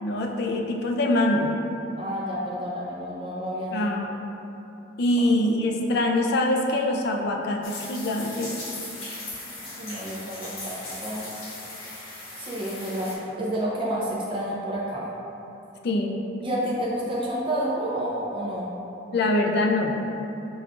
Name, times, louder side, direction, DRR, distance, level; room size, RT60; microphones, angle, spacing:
voice 1, 0.0-1.6 3.7-4.2 5.0-8.5 15.8-16.2 19.1-20.0, left 1 dB, 55° left, 1 dB, 0.4 m, -24 dB
voice 2, 2.0-3.9 9.6-10.7 11.0-11.3 12.4-15.1 16.4-18.7, right 1 dB, 25° right, -6 dB, 0.5 m, -30 dB
sound 1, 7.6-13.1, left 2 dB, 85° left, 0.9 m, -38 dB
6.8 x 2.3 x 2.5 m, 2.9 s
head